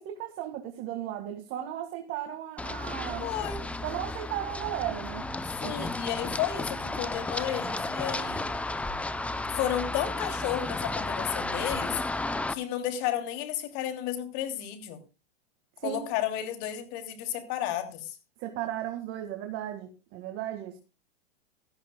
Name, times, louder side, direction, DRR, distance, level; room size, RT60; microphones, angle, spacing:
voice 1, 0.0-3.3 3.8-5.3 5.6-5.9 15.8-16.0 18.4-20.8, right 12 dB, 40° right, 5 dB, 1.9 m, -35 dB
Run, 2.6-12.5, left 2 dB, 5° left, 0.5 m, -33 dB
voice 2, 3.2-3.6 5.6-8.5 9.4-12.0 12.5-15.0 15.8-18.2, left 11 dB, 45° left, 7 dB, 2.9 m, -32 dB
16.5 x 13.5 x 2.2 m, 0.31 s
hypercardioid pair, 130°, 32 cm